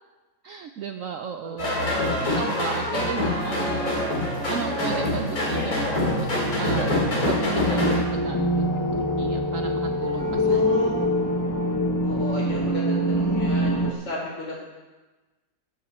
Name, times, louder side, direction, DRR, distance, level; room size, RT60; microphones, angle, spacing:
voice 1, 0.4-1.7 2.2-3.9 4.5-6.3 6.6-6.9 7.2-7.8 8.1-10.6, right 7 dB, 70° right, 7 dB, 0.7 m, -34 dB
voice 2, 1.4-2.4 2.8-3.9 5.4-5.8 10.3-11.1 12.0-14.6, left 2 dB, 80° left, -5 dB, 5.5 m, -34 dB
sound 1, 1.6-8.0, left 1 dB, 50° left, 3.7 m, -25 dB
sound 2, 5.5-13.9, equal, 20° left, 0.5 m, -25 dB
13.5 x 11.5 x 4.3 m, 1.2 s
omnidirectional pair, 2.0 m